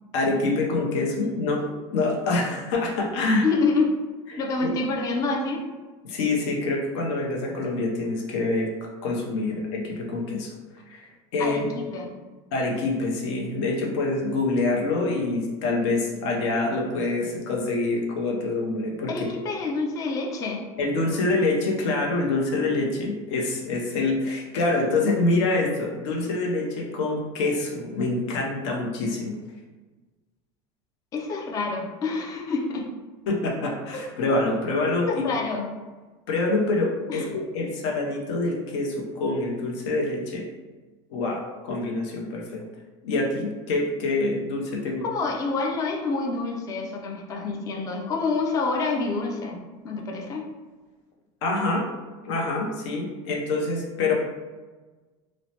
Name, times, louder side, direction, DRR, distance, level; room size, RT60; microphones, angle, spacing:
voice 1, 0.1-3.5 4.6-4.7 6.0-10.5 10.9-11.7 12.5-19.3 20.8-29.3 33.3-35.2 36.3-40.4 41.1-42.6 43.0-45.0 51.4-51.8 52.2-54.1, left 2 dB, 85° left, 0 dB, 0.7 m, -26 dB
voice 2, 3.4-3.9 4.4-5.7 9.5-9.6 11.4-12.1 19.1-20.6 31.1-32.9 33.9-34.0 35.1-35.7 37.1-37.3 45.0-50.4, left 3 dB, 25° left, 0 dB, 0.3 m, -27 dB
3.0 x 2.0 x 2.7 m, 1.3 s
supercardioid pair, 135°, 15 cm